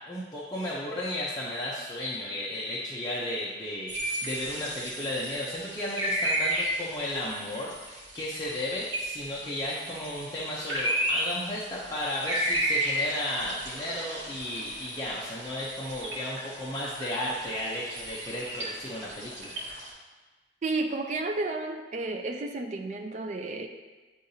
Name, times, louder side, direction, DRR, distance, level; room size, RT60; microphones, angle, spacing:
voice 1, 0.1-19.5, left 1 dB, 20° left, -7 dB, 0.7 m, -34 dB
sound 1, 3.9-19.9, right 1 dB, 70° right, 1.7 m, -33 dB
voice 2, 20.6-23.7, right 2 dB, 40° right, 3 dB, 0.4 m, -32 dB
9.9 x 3.8 x 2.7 m, 1.3 s
head